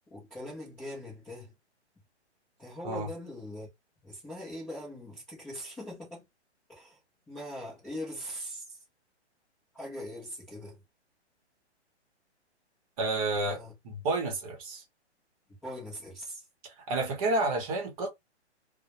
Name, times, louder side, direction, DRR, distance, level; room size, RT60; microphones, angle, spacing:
voice 1, 0.1-1.5 2.6-3.7 4.0-6.3 6.7-7.0 7.3-8.8 9.7-10.8 13.4-13.7 15.6-16.4, left 1 dB, 5° left, 0.4 m, -41 dB
voice 2, 13.0-14.8 16.9-18.1, right 2 dB, 30° right, 0.9 m, -30 dB
2.1 x 2.1 x 2.8 m
hypercardioid pair, 145°, 35 cm